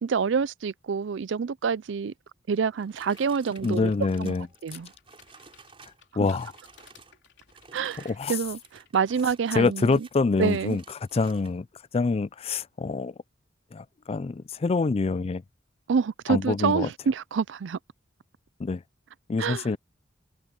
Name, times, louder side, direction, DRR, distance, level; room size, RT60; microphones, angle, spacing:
voice 1, 0.0-2.1 2.5-3.9 4.2-4.3 4.6-4.9 6.2-6.3 7.7-10.1 10.4-10.8 15.9-17.8 19.4-19.7, right 6 dB, 70° right, 0.4 m, -27 dB
sound 1, 2.5-6.0 6.3-7.2 7.5-11.6, right 4 dB, 30° right, 4.6 m, -53 dB
sound 2, 3.0-9.0, left 7 dB, 65° left, 3.5 m, -58 dB
voice 2, 3.6-4.5 6.2-6.5 8.0-8.3 9.5-10.8 11.1-11.7 11.9-13.1 13.7-15.4 16.3-16.9 18.6-18.8 19.3-19.8, left 4 dB, 30° left, 0.4 m, -26 dB
head